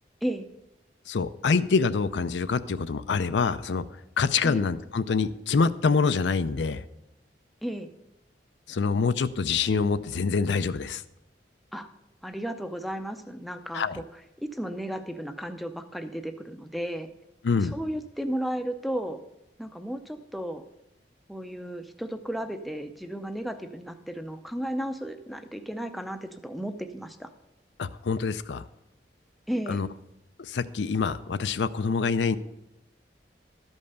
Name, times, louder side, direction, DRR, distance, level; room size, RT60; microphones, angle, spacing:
voice 1, 1.1-3.8 4.2-6.8 8.7-11.0 13.7-14.0 17.4-17.7 27.8-28.6 29.7-29.9 30.4-32.4, left 5 dB, 75° left, 13 dB, 0.5 m, -25 dB
voice 2, 12.2-14.0 14.4-17.1 17.6-19.2 19.6-20.6 21.3-27.3 29.5-29.9, equal, ahead, 7 dB, 0.5 m, -34 dB
12.5 x 5.5 x 6.6 m, 0.90 s
head